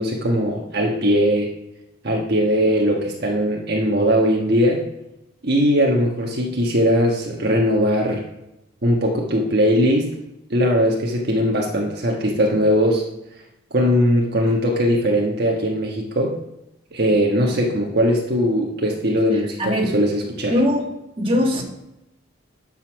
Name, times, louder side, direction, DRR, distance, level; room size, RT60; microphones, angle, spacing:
voice 1, 0.0-1.5 2.0-4.8 5.4-8.2 8.8-10.1 10.5-13.0 13.7-16.3 16.9-20.5, equal, 50° right, -1 dB, 1.3 m, -20 dB
voice 2, 19.6-20.0 20.5-20.9 21.2-21.6, left 1 dB, 25° right, 0 dB, 1.7 m, -20 dB
12.5 x 5.5 x 6.2 m, 0.90 s
head